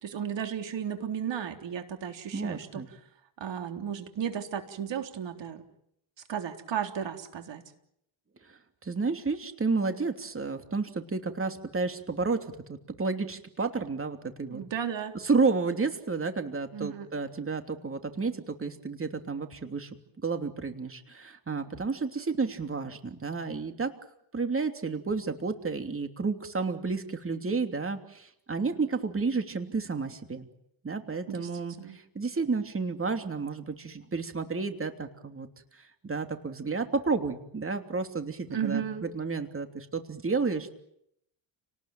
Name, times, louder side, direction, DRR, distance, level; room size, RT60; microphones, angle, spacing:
voice 1, 0.0-2.8 3.4-5.6 6.3-7.6 14.5-15.2 16.7-17.1 31.3-31.5 31.8-32.0 38.5-39.1, right 8 dB, 60° right, 6 dB, 3.7 m, -34 dB
voice 2, 2.3-2.9 8.5-14.6 15.2-19.9 20.2-23.9 24.3-30.5 30.8-35.5 35.7-40.7, right 4 dB, 25° right, 6 dB, 3.0 m, -31 dB
29.5 x 19.5 x 9.1 m, 0.76 s
cardioid pair, 95°, 48 cm